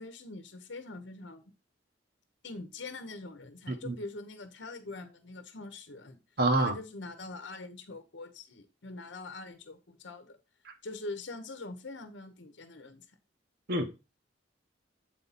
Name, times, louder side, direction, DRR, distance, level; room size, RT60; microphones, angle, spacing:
voice 1, 0.0-1.4 2.4-6.2 6.6-10.4 10.8-13.1, left 3 dB, 80° left, 0.9 m, -43 dB
voice 2, 6.4-6.8 10.7-10.8 13.7-13.9, right 2 dB, 60° right, 1.1 m, -27 dB
7.7 x 4.2 x 4.0 m
head